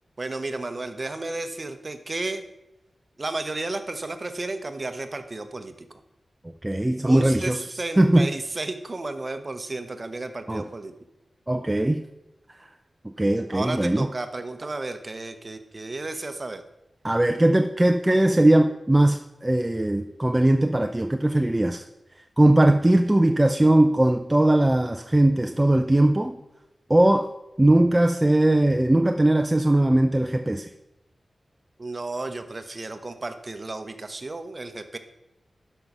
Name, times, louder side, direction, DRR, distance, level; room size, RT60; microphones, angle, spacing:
voice 1, 0.2-2.4 3.2-5.9 7.1-10.9 13.5-16.6 18.1-18.2 31.8-35.0, right 2 dB, 35° right, 8 dB, 0.9 m, -33 dB
voice 2, 6.6-8.3 10.5-10.6 11.5-12.0 12.5-12.7 13.2-14.1 17.0-21.9 22.4-26.4 26.9-27.3 27.6-30.7, right 1 dB, 15° right, 6 dB, 0.5 m, -20 dB
12.0 x 5.5 x 6.0 m, 0.90 s
wide cardioid pair, 120°, 0 cm